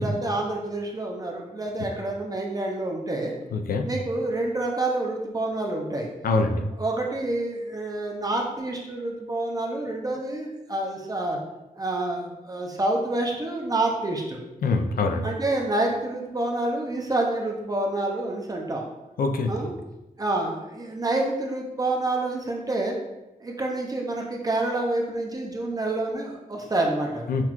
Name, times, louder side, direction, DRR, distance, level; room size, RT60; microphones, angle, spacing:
voice 1, 0.0-3.3 3.8-6.1 6.8-11.4 11.7-14.4 15.2-18.9 19.5-19.7 20.2-23.0 23.4-27.3, right 2 dB, 25° right, 0 dB, 0.4 m, -28 dB
voice 2, 3.5-3.9 6.2-6.7 14.6-15.2 19.2-19.5 27.3-27.4, left 3 dB, 90° left, 5 dB, 0.4 m, -24 dB
5.7 x 2.3 x 2.9 m, 1.0 s
wide cardioid pair, 165°, 15 cm